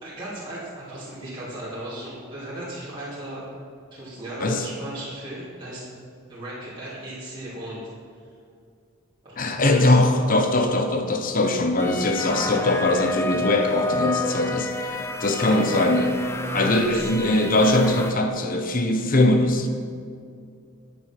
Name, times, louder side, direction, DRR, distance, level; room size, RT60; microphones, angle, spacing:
voice 1, 0.0-3.4 3.9-5.9 6.3-7.9 9.2-10.0 15.4-15.9 16.8-17.1, right 1 dB, 20° right, -10 dB, 2.9 m, -36 dB
voice 2, 9.4-14.9 15.2-16.2 16.5-19.7, left 2 dB, 40° left, 6 dB, 0.8 m, -21 dB
sound 1, 11.8-18.1, left 2 dB, 10° left, 0.5 m, -30 dB
9.7 x 9.5 x 5.9 m, 2.3 s
head